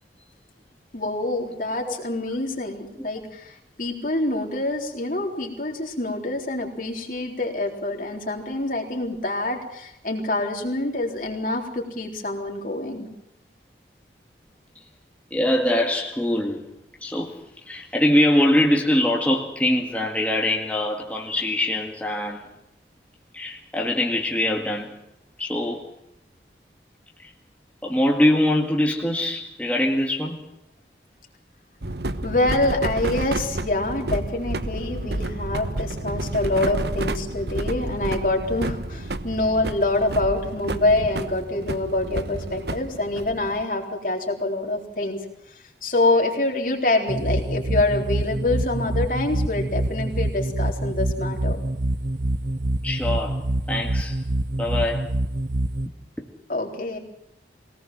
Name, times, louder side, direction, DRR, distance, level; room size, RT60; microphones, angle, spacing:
voice 1, 0.9-13.1 32.2-45.2 45.5-51.6 56.5-57.0, left 2 dB, 50° left, 2 dB, 3.8 m, -26 dB
voice 2, 15.3-16.7 17.0-17.3 17.7-22.5 23.3-24.9 25.4-25.8 27.2-27.3 27.8-30.4 52.8-54.2 54.6-55.1 56.2-56.3, left 1 dB, 10° left, -1 dB, 2.0 m, -23 dB
sound 1, 31.8-43.6, right 1 dB, 70° right, 1.1 m, -30 dB
sound 2, 47.1-55.9, right 1 dB, 45° right, 0.8 m, -26 dB
23.0 x 18.5 x 7.6 m, 0.81 s
head